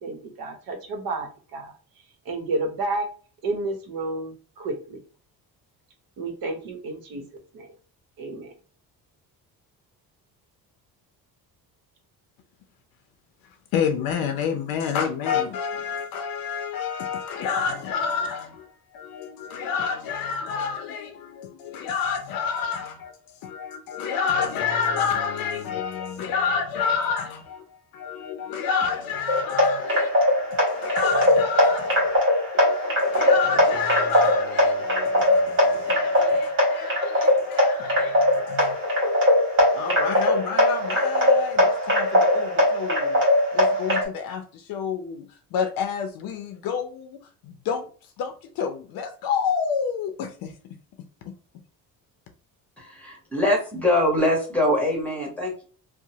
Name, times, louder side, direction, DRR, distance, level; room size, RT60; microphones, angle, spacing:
voice 1, 0.0-1.7 2.3-3.1 3.4-5.0 6.2-7.3 7.5-7.7 8.2-8.5, right 2 dB, 70° right, 0.8 m, -31 dB
voice 2, 13.7-23.1 23.4-32.2 32.5-38.8 39.7-43.2 43.5-45.3 45.5-47.9 48.2-50.5, left 6 dB, 70° left, 0.5 m, -29 dB
sound 1, 29.3-44.0, left 1 dB, 35° right, 1.1 m, -21 dB
voice 3, 52.8-55.6, left 1 dB, 5° left, 1.1 m, -23 dB
2.9 x 2.0 x 2.7 m
cardioid pair, 125°, 36 cm